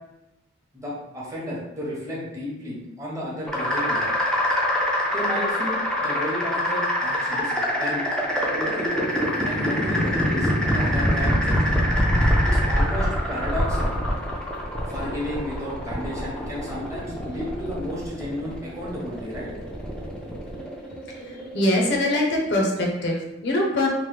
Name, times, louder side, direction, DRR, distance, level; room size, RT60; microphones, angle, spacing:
voice 1, 0.7-4.0 5.1-8.0 8.5-8.9 9.4-11.9 12.4-13.9 14.8-19.5, equal, 15° right, -6 dB, 0.8 m, -33 dB
sound 1, 3.5-22.2, equal, 5° left, 0.4 m, -25 dB
voice 2, 21.2-23.9, left 1 dB, 60° left, 0 dB, 0.6 m, -23 dB
3.0 x 2.1 x 3.3 m, 0.97 s
head